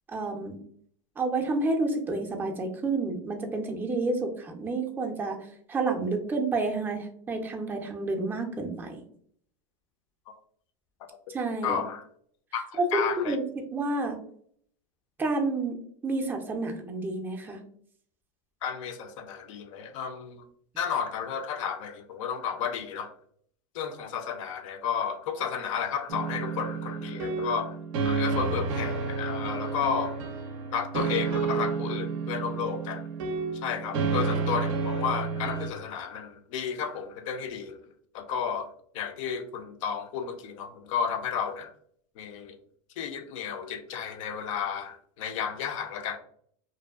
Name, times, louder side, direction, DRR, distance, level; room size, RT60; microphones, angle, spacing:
voice 1, 0.1-0.6 1.2-9.0 11.3-11.8 12.8-13.4 13.7-14.2 15.2-17.6, right 3 dB, 10° right, 3 dB, 0.4 m, -30 dB
voice 2, 11.6-12.0 12.5-13.4 18.6-20.4 20.8-23.1 23.7-27.8 28.0-30.2 30.7-33.0 33.6-37.8 38.1-38.7 38.9-41.7 42.2-42.6 43.0-46.2, left 7 dB, 75° left, 8 dB, 0.5 m, -32 dB
sound 1, 26.1-35.7, right 4 dB, 75° right, 0.4 m, -30 dB
2.6 x 2.2 x 2.3 m, 0.62 s
supercardioid pair, 120°, 17 cm